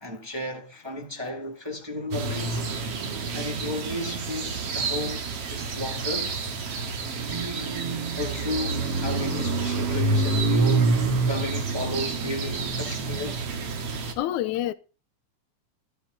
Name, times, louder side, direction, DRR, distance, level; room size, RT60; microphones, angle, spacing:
voice 1, 0.0-2.6 3.3-6.4 7.2-10.9 11.2-13.5, left 1 dB, 10° right, 1.7 m, -34 dB
Amphitheatre Morning, 2.1-14.1, right 3 dB, 55° right, 2.8 m, -27 dB
voice 2, 14.2-14.7, left 13 dB, 80° left, 2.1 m, -27 dB
13.0 x 11.5 x 4.0 m
omnidirectional pair, 3.4 m